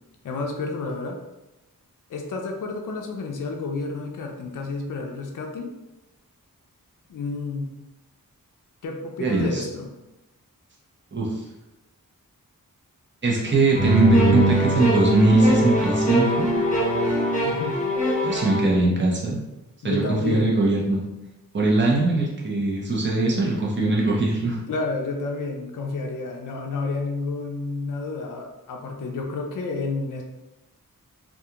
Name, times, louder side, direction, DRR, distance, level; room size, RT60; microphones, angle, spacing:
voice 1, 0.2-1.2 2.1-5.7 7.1-7.7 8.8-9.9 17.4-17.8 19.8-20.6 24.7-30.2, left 3 dB, 65° left, 2 dB, 0.5 m, -30 dB
voice 2, 9.2-9.6 11.1-11.4 13.2-16.5 18.2-19.4 19.8-21.1 21.5-24.6, right 2 dB, 35° right, -4 dB, 0.7 m, -21 dB
sound 1, 13.7-18.7, right 1 dB, 20° left, 0.9 m, -22 dB
2.4 x 2.3 x 2.8 m, 0.98 s
wide cardioid pair, 55°, 35 cm